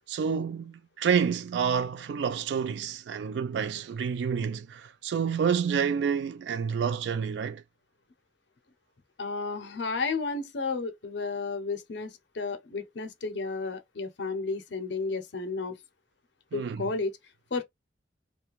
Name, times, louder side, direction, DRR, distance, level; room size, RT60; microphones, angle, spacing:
voice 1, 0.1-7.6 16.5-16.9, right 6 dB, 70° right, 0.3 m, -29 dB
voice 2, 9.2-15.8 16.5-17.2 17.5-17.6, left 4 dB, 70° left, 0.6 m, -32 dB
2.4 x 2.2 x 3.0 m
head